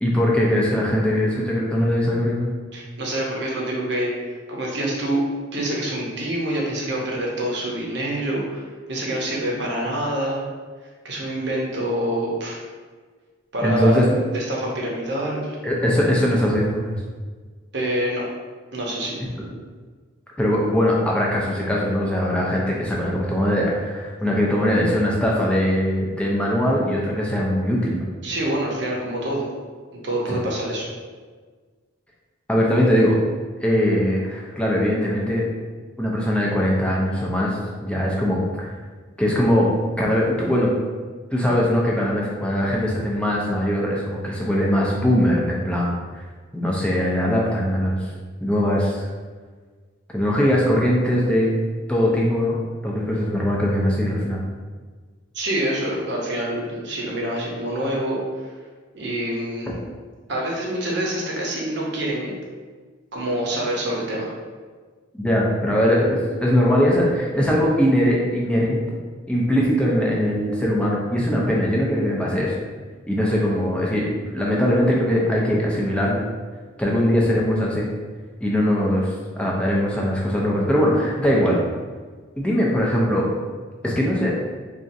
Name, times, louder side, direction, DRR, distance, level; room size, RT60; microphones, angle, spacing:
voice 1, 0.0-2.5 13.6-14.1 15.6-17.0 20.4-28.1 30.3-30.4 32.5-33.2 33.6-35.4 36.0-38.7 39.2-39.7 40.0-40.7 41.3-46.2 46.5-48.1 48.4-49.1 50.1-51.5 51.9-54.4 65.1-68.8 69.3-72.5 73.1-76.2 76.8-77.9 78.4-81.6 82.4-83.3 83.8-84.3, equal, 5° left, -4 dB, 0.4 m, -21 dB
voice 2, 2.7-5.2 5.5-10.4 11.0-12.6 13.5-15.6 17.7-18.2 18.7-19.2 28.2-29.4 29.9-30.9 55.3-58.5 58.9-59.7 60.3-62.3 63.1-64.3, right 1 dB, 55° right, -3 dB, 0.7 m, -26 dB
4.1 x 2.4 x 2.6 m, 1.5 s
head